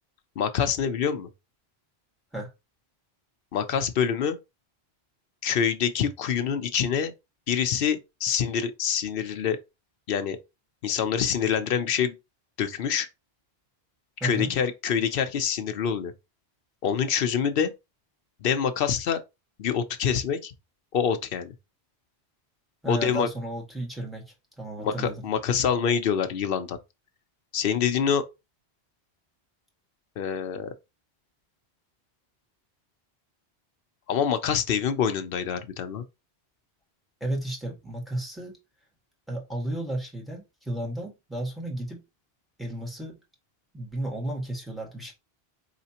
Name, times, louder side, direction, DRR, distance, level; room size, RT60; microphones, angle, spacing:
voice 1, 0.4-1.3 3.5-4.4 5.4-7.1 7.5-9.6 10.1-10.4 10.8-12.2 12.6-13.1 14.2-16.1 16.8-17.7 18.4-19.2 19.6-20.5 20.9-21.5 22.9-23.3 24.8-26.8 27.5-28.2 30.2-30.7 34.1-36.0, left 7 dB, 65° left, 0.8 m, -26 dB
voice 2, 14.2-14.5 22.8-25.2 37.2-38.6 39.3-42.0 42.6-43.2 43.7-45.1, right 1 dB, ahead, 1.5 m, -33 dB
4.9 x 3.2 x 2.8 m
omnidirectional pair, 1.1 m